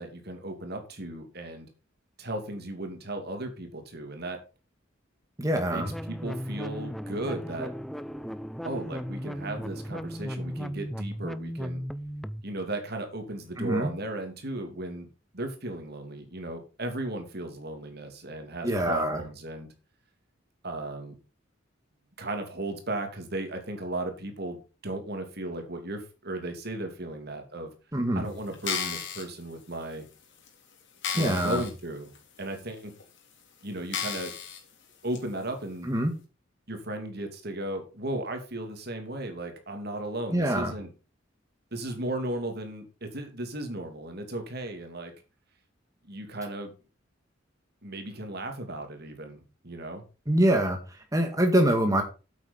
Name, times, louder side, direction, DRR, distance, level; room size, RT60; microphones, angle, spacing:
voice 1, 0.0-1.7 2.2-4.4 5.6-7.7 8.6-11.8 12.4-15.1 15.3-19.7 20.6-21.2 22.2-27.7 28.1-30.0 31.1-32.9 33.6-34.3 35.0-35.9 36.7-40.9 41.7-45.1 46.0-46.7 47.8-50.0, right 1 dB, 55° right, 5 dB, 2.9 m, -35 dB
voice 2, 5.4-5.9 13.6-13.9 18.6-19.2 27.9-28.3 31.2-31.6 35.8-36.1 40.3-40.7 50.3-52.0, right 1 dB, 15° right, 4 dB, 1.9 m, -25 dB
sound 1, 5.8-12.4, equal, ahead, 0.5 m, -36 dB
sound 2, 28.5-29.2 29.9-30.0 30.5-30.6 31.0-31.7 32.1-32.2 33.0-33.1 33.9-34.6 35.1-35.2, left 7 dB, 65° left, 3.5 m, -33 dB
8.8 x 8.4 x 5.5 m, 0.32 s
head